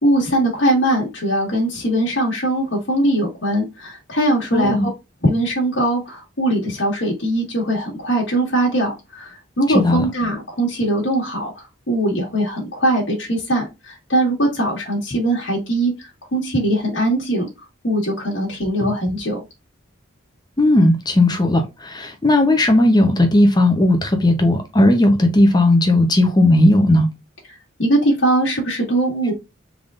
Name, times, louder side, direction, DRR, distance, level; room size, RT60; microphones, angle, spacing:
voice 1, 0.0-4.8 5.2-17.5 17.8-19.4 27.8-29.3, right 1 dB, 70° left, 1.5 m, -21 dB
voice 2, 4.5-4.9 9.7-10.0 18.8-18.9 20.6-27.1, left 1 dB, 20° left, 0.7 m, -15 dB
3.6 x 3.5 x 2.4 m
head